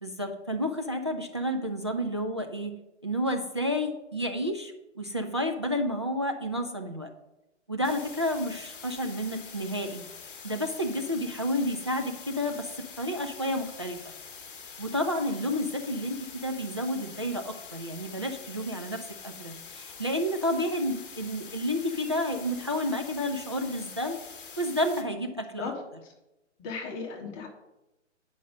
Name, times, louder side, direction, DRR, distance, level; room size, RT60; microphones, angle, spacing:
voice 1, 0.0-7.1 7.7-10.1 10.4-12.7 13.0-14.0 14.8-24.2 24.6-25.7, equal, 25° right, 4 dB, 0.3 m, -30 dB
sound 1, 7.8-25.0, left 5 dB, 45° left, 1.1 m, -45 dB
voice 2, 26.6-27.5, left 4 dB, 20° left, 0 dB, 1.3 m, -35 dB
9.0 x 5.4 x 5.1 m, 0.96 s
figure-of-eight pair, 130°, 37 cm